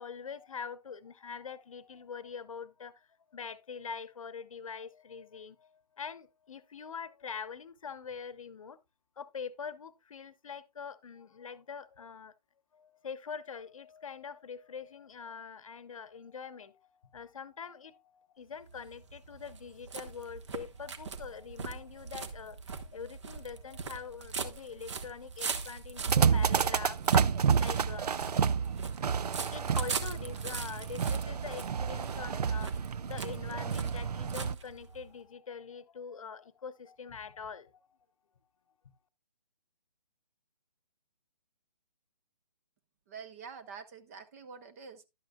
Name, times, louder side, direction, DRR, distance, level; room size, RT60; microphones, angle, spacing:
voice 1, 0.0-3.1 3.3-5.7 6.0-8.8 9.2-12.3 12.7-27.0 27.6-28.1 29.5-37.8, left 6 dB, 55° left, 0.9 m, -44 dB
sound 1, 18.6-35.1, right 5 dB, 45° right, 1.3 m, -41 dB
sound 2, 26.1-34.5, right 6 dB, 70° right, 0.4 m, -30 dB
voice 2, 43.1-45.0, right 6 dB, 20° right, 0.6 m, -47 dB
11.5 x 8.9 x 2.3 m
figure-of-eight pair, 140°, 21 cm